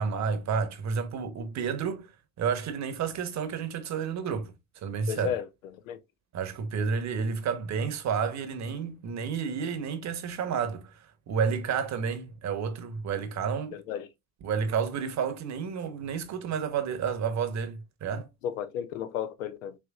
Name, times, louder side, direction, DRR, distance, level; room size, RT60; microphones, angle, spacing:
voice 1, 0.0-2.1 2.4-4.5 4.8-5.3 6.3-13.8 14.4-18.3, right 6 dB, 45° right, 1.0 m, -30 dB
voice 2, 5.1-5.5 5.9-6.0 13.7-14.1 18.4-19.8, left 9 dB, 80° left, 0.6 m, -33 dB
4.6 x 3.2 x 2.3 m
hypercardioid pair, 70°, 39 cm